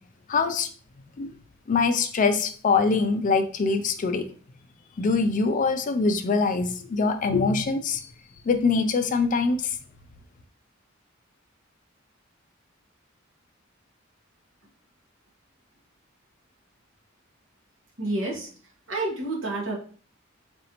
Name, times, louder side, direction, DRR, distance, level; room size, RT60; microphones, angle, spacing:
voice 1, 0.3-0.7 1.2-1.3 1.7-4.2 5.0-8.0 8.5-9.7, left 4 dB, 40° left, 9 dB, 0.4 m, -23 dB
voice 2, 18.0-18.5 18.9-19.7, right 2 dB, 70° right, -2 dB, 1.1 m, -29 dB
4.0 x 2.6 x 2.9 m, 0.43 s
head